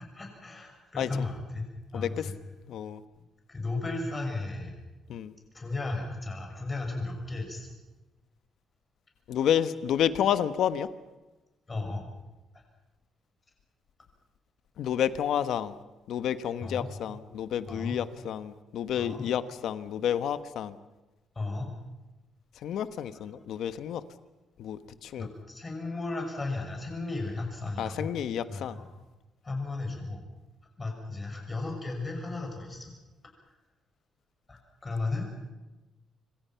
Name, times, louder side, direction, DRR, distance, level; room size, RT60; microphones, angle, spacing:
voice 1, 0.1-1.6 1.9-2.3 3.5-4.8 5.5-7.7 11.7-12.1 16.6-16.9 17.7-18.0 19.0-19.3 21.3-21.7 23.1-23.2 25.2-28.1 28.5-28.9 29.4-30.2 30.8-32.9 34.5-35.3, left 3 dB, 20° left, 2 dB, 6.2 m, -35 dB
voice 2, 1.9-2.2 2.7-3.0 5.1-5.3 9.3-10.9 14.8-15.7 16.1-20.7 22.6-24.0 24.6-25.3 27.8-28.8, left 9 dB, 70° left, 12 dB, 1.3 m, -30 dB
26.5 x 25.0 x 5.9 m, 1.1 s
cardioid pair, 150°, 0 cm